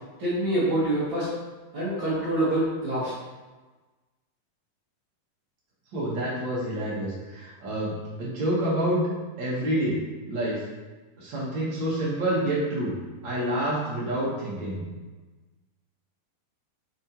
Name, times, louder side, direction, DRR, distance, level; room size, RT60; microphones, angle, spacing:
voice 1, 0.2-1.3 1.7-3.1, right 1 dB, 50° right, -12 dB, 1.6 m, -26 dB
voice 2, 5.9-9.0 9.4-10.0 10.3-10.6 11.2-12.9 13.2-14.9, right 1 dB, 70° right, -6 dB, 1.1 m, -28 dB
5.2 x 3.5 x 2.8 m, 1.2 s
omnidirectional pair, 3.8 m